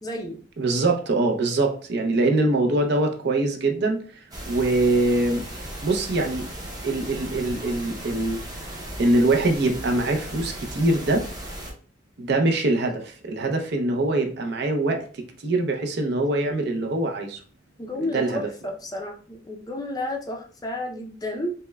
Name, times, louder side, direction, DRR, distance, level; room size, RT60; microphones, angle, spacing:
voice 1, 0.0-0.4 17.8-21.5, left 1 dB, 20° left, 2 dB, 0.4 m, -31 dB
voice 2, 0.6-4.0 4.5-5.4 5.8-6.5 6.8-8.4 9.0-11.2 12.2-15.1 15.4-17.4 18.0-18.4, right 2 dB, 60° right, 3 dB, 0.6 m, -23 dB
sound 1, 4.3-11.7, right 1 dB, 20° right, 0.7 m, -36 dB
5.4 x 2.1 x 2.2 m, 0.42 s
head